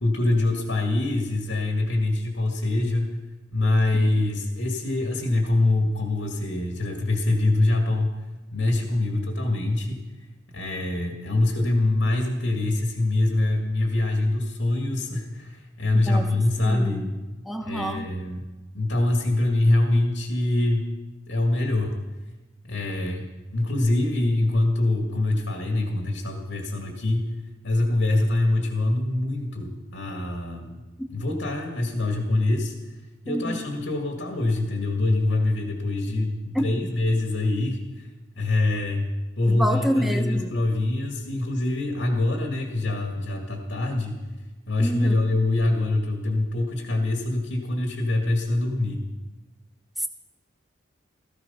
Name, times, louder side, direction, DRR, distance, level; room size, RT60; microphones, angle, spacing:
voice 1, 0.0-3.2 3.5-8.2 8.5-10.0 10.5-17.0 17.7-18.4 18.7-21.0 21.3-21.9 22.7-23.3 23.5-27.4 27.6-30.8 31.1-32.7 33.2-38.1 38.4-39.1 39.4-44.2 44.7-49.0, left 2 dB, 75° left, 2 dB, 2.1 m, -24 dB
voice 2, 15.9-18.1 33.3-33.6 36.5-36.7 39.5-40.6 44.8-45.2 50.0-50.1, equal, ahead, 4 dB, 1.1 m, -28 dB
17.0 x 14.5 x 5.6 m, 1.2 s
head